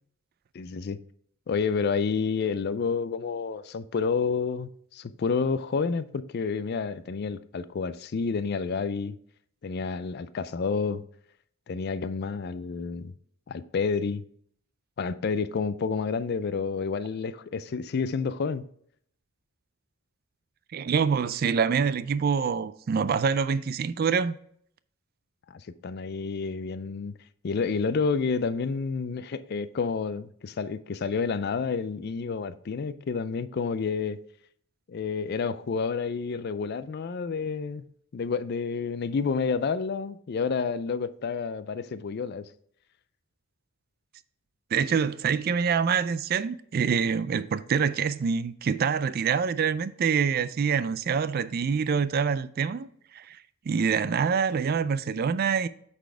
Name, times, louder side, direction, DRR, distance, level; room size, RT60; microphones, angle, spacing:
voice 1, 0.5-1.0 1.5-9.2 9.6-11.0 11.7-13.1 13.5-14.2 15.0-18.7 25.5-27.1 27.4-34.2 34.9-37.9 38.1-42.5, left 5 dB, 45° left, 0.4 m, -29 dB
voice 2, 20.7-24.4 44.7-52.9 53.1-53.4 53.7-55.7, right 6 dB, 45° right, 0.3 m, -26 dB
8.2 x 4.2 x 4.4 m
head